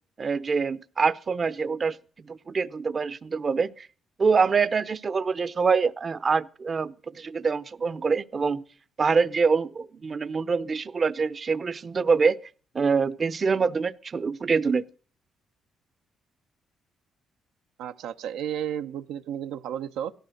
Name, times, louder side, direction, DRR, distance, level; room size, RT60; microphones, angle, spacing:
voice 1, 0.2-2.0 2.3-3.9 4.2-8.6 9.0-12.4 12.7-14.8, right 5 dB, 40° right, 0.7 m, -25 dB
voice 2, 17.8-20.1, right 9 dB, 90° right, 0.8 m, -33 dB
17.0 x 13.0 x 6.5 m
cardioid pair, 90°, 0 cm